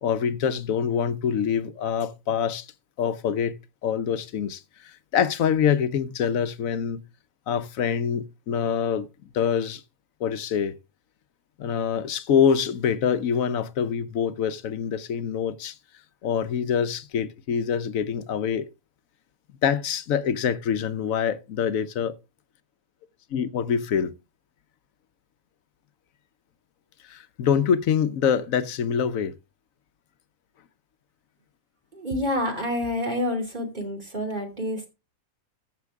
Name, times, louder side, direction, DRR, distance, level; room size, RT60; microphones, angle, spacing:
voice 1, 0.0-2.7 3.0-3.6 3.8-7.0 7.5-9.1 9.3-9.8 10.2-10.8 11.6-15.8 16.2-18.7 19.6-22.1 23.3-24.1 27.0-29.3, left 7 dB, 70° left, 1.2 m, -25 dB
voice 2, 32.0-34.9, left 1 dB, 35° right, 3.0 m, -28 dB
14.5 x 6.7 x 3.6 m
omnidirectional pair, 1.5 m